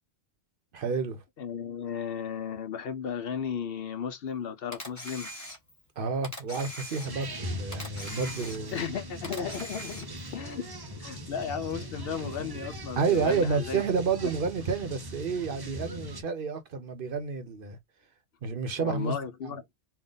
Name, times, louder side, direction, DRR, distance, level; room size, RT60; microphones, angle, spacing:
voice 1, 0.7-1.2 6.0-8.9 13.0-17.8 18.4-19.1 19.4-19.6, right 5 dB, 55° right, 0.9 m, -30 dB
voice 2, 1.4-5.3 8.7-10.6 11.0-13.8 18.8-19.6, left 7 dB, 65° left, 0.8 m, -35 dB
Camera, 4.7-5.9 6.2-7.4 7.7-8.9 9.2-10.3, equal, 15° left, 1.5 m, -41 dB
sound 1, 7.0-16.2, equal, 25° right, 0.5 m, -40 dB
3.5 x 2.4 x 3.8 m
omnidirectional pair, 1.1 m